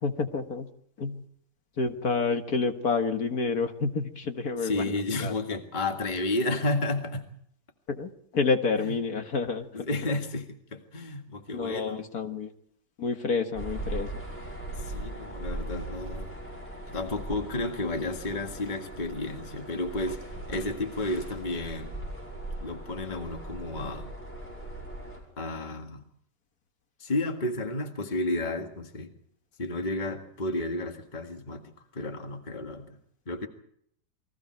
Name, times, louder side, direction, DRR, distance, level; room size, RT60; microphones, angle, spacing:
voice 1, 0.0-0.7 1.0-1.2 1.8-5.3 7.9-9.9 11.5-12.5 13.0-14.2, left 4 dB, 60° left, 6 dB, 2.0 m, -29 dB
voice 2, 4.6-7.3 8.8-8.9 9.7-12.1 14.8-16.4 16.9-22.0 22.6-24.1 25.4-26.0 27.0-29.1 29.6-31.6 31.9-33.0 33.3-33.5, left 2 dB, 25° left, 4 dB, 1.9 m, -32 dB
sound 1, 13.5-25.2, right 1 dB, 5° left, 7.4 m, -39 dB
29.0 x 22.0 x 4.6 m, 0.67 s
omnidirectional pair, 1.8 m